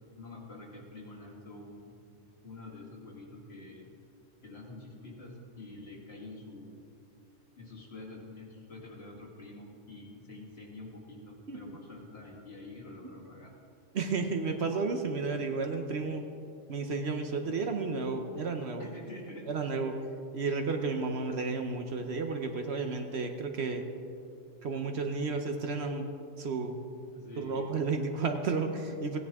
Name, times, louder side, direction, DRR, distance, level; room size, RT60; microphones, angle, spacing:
voice 1, 0.0-2.0 2.4-4.0 4.4-6.8 7.6-13.5 18.8-19.5 27.1-27.7, left 2 dB, 50° left, -1 dB, 2.0 m, -47 dB
voice 2, 13.9-16.2 16.7-18.9 19.5-20.0 20.3-23.8 24.6-26.1 26.4-26.7 27.4-29.2, right 4 dB, 60° right, 5 dB, 1.0 m, -32 dB
16.0 x 10.0 x 3.5 m, 2.5 s
omnidirectional pair, 1.3 m